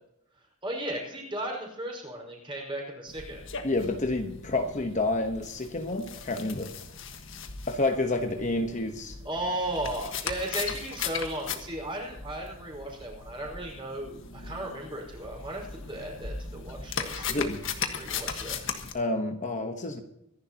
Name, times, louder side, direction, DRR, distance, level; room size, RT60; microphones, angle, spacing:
voice 1, 0.6-3.4 9.2-17.2 18.0-18.7, right 1 dB, 25° right, -1 dB, 4.9 m, -35 dB
sound 1, 3.1-18.9, left 6 dB, 60° left, 1.5 m, -38 dB
voice 2, 3.6-6.7 7.7-9.2 17.3-17.6 18.9-20.0, left 2 dB, 35° left, 5 dB, 1.1 m, -29 dB
25.0 x 11.0 x 2.9 m, 0.81 s
head